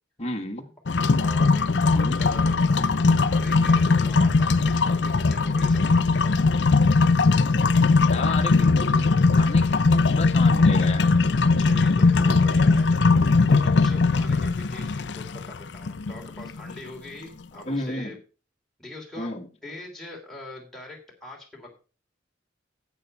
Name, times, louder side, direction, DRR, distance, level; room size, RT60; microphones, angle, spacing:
voice 1, 0.2-0.7 1.9-2.2 8.1-11.2 17.7-18.2 19.2-19.5, left 2 dB, 35° left, 1.3 m, -33 dB
sound 1, 0.9-16.8, left 3 dB, 65° left, 0.6 m, -20 dB
voice 2, 1.1-2.8 3.2-6.4 11.6-12.9 13.5-18.2 18.8-19.3 19.6-21.7, left 2 dB, ahead, 2.9 m, -42 dB
8.8 x 8.3 x 5.3 m
head